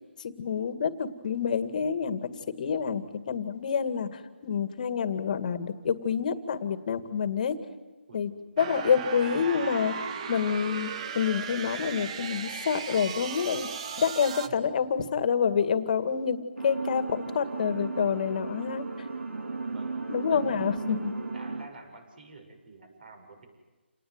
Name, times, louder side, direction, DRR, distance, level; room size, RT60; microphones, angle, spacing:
voice 1, 0.2-2.3 2.6-7.6 8.1-8.3 8.6-13.7 14.0-18.9 20.1-21.1, left 7 dB, 40° left, 11 dB, 2.1 m, -28 dB
sound 1, 8.6-14.5, right 6 dB, 30° right, 1.3 m, -36 dB
voice 2, 14.4-14.9 19.6-23.5, right 2 dB, 50° right, 6 dB, 7.1 m, -50 dB
sound 2, 16.6-21.7, right 3 dB, 75° right, 3.2 m, -35 dB
29.0 x 19.5 x 9.5 m, 1.3 s
hypercardioid pair, 160°, 6 cm